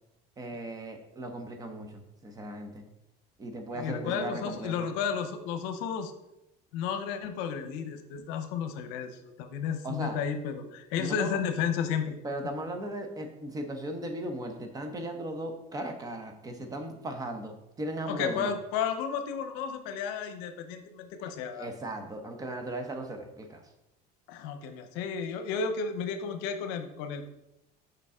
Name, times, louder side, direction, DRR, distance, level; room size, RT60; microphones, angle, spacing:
voice 1, 0.4-2.8 3.4-4.8 9.8-10.2 11.0-11.4 12.2-18.5 21.5-23.6, right 1 dB, 20° right, 5 dB, 0.8 m, -37 dB
voice 2, 3.7-6.1 6.7-9.1 9.4-12.2 18.1-21.7 24.3-27.3, left 7 dB, 80° left, 9 dB, 0.8 m, -32 dB
6.8 x 5.4 x 3.7 m, 0.87 s
cardioid pair, 155°, 18 cm